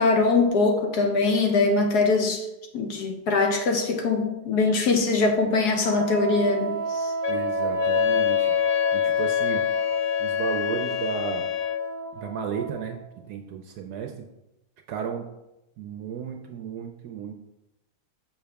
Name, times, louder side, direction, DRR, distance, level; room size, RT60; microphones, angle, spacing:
voice 1, 0.0-2.5 2.7-7.1, left 3 dB, 60° left, 3 dB, 1.2 m, -22 dB
Wind instrument woodwind instrument, 5.8-13.1, right 3 dB, 5° left, 0.4 m, -32 dB
Wind instrument woodwind instrument 2, 7.2-11.9, left 10 dB, 90° left, 1.4 m, -25 dB
voice 2, 7.3-8.5 8.9-9.6 10.2-11.5 12.1-14.3 14.9-15.3 15.8-17.3, right 7 dB, 70° right, 4 dB, 1.0 m, -33 dB
6.8 x 5.6 x 3.4 m, 0.93 s
omnidirectional pair, 2.1 m